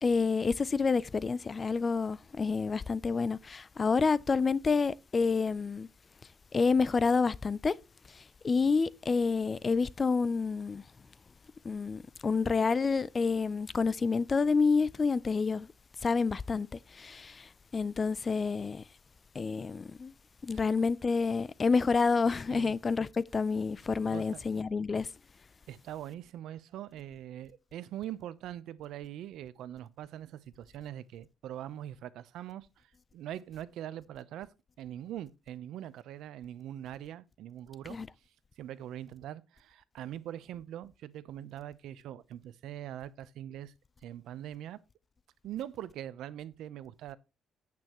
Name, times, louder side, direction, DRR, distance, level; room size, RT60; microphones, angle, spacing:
voice 1, 0.0-5.9 6.5-7.7 8.4-10.8 11.6-15.7 16.0-16.7 16.9-18.8 19.4-20.1 20.4-25.1 37.9-38.1, left 4 dB, 25° left, 0.4 m, -28 dB
voice 2, 24.1-24.4 25.7-34.5 34.8-38.0 38.6-43.7 44.0-44.8 45.4-47.2, right 11 dB, 80° right, 0.7 m, -42 dB
9.5 x 8.6 x 3.0 m
cardioid pair, 140°, 0 cm